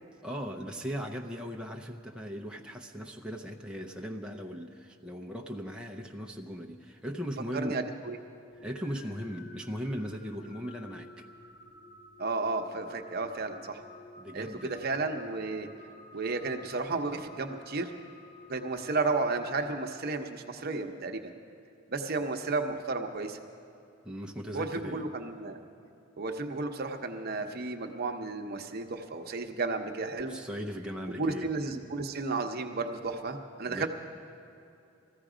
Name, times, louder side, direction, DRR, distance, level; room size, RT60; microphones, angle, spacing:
voice 1, 0.2-7.8 8.6-11.3 14.2-14.8 24.0-25.1 30.3-31.5 33.7-33.9, equal, 5° right, 1 dB, 0.6 m, -38 dB
voice 2, 7.5-8.2 12.2-13.8 14.3-15.7 16.1-17.9 18.5-21.3 21.9-23.4 24.5-25.6 26.2-30.4 31.2-33.9, right 3 dB, 50° right, 5 dB, 0.9 m, -33 dB
sound 1, 8.5-20.5, left 2 dB, 55° left, 2.0 m, -52 dB
20.0 x 14.5 x 5.0 m, 2.6 s
head